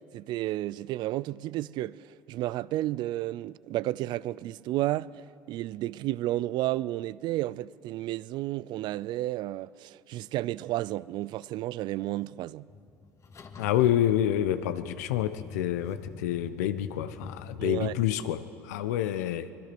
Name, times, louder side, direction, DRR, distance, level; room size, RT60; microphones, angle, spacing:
voice 1, 0.1-2.0 2.3-12.7 17.6-17.9, right 15 dB, 60° right, 0.5 m, -32 dB
sound 1, 12.7-18.0, left 5 dB, 35° left, 1.7 m, -45 dB
voice 2, 13.6-19.5, left 11 dB, 80° left, 0.9 m, -28 dB
24.5 x 21.0 x 6.1 m
hypercardioid pair, 75°, 9 cm